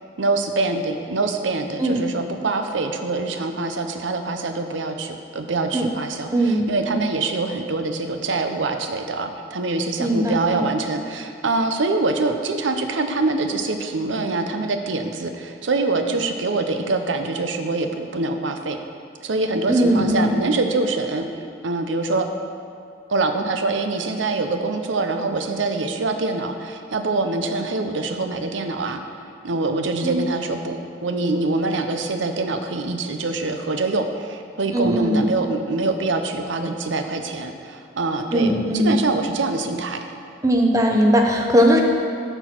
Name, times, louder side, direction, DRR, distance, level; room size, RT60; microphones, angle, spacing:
voice 1, 0.2-18.8 19.2-21.3 21.6-22.3 23.1-29.0 29.4-40.0, right 3 dB, 85° right, 6 dB, 0.7 m, -24 dB
voice 2, 6.3-6.7 10.0-10.6 19.7-20.3 30.0-30.2 34.7-35.2 38.3-39.0 40.4-41.8, equal, 15° right, 1 dB, 0.8 m, -19 dB
12.0 x 4.5 x 5.8 m, 2.5 s
head